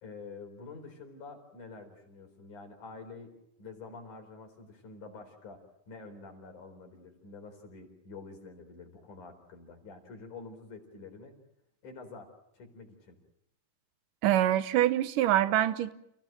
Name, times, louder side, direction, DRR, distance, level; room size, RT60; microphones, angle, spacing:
voice 1, 0.0-3.3 3.6-11.3 11.8-13.1, left 4 dB, 70° left, 4 dB, 5.7 m, -48 dB
voice 2, 14.2-15.9, right 13 dB, 85° right, 13 dB, 2.6 m, -25 dB
29.0 x 17.0 x 9.0 m, 0.83 s
omnidirectional pair, 3.7 m